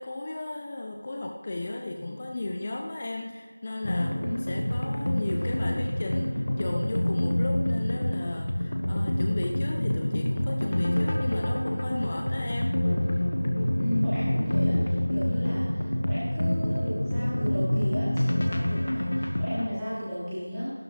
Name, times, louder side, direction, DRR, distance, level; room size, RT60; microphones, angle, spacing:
voice 1, 0.0-12.8, left 2 dB, 20° left, 1 dB, 0.4 m, -35 dB
sound 1, 3.8-19.7, left 1 dB, 50° left, 1.1 m, -27 dB
voice 2, 13.8-20.7, equal, 5° right, -16 dB, 1.8 m, -34 dB
12.5 x 12.5 x 3.3 m, 1.4 s
figure-of-eight pair, 175°, 0 cm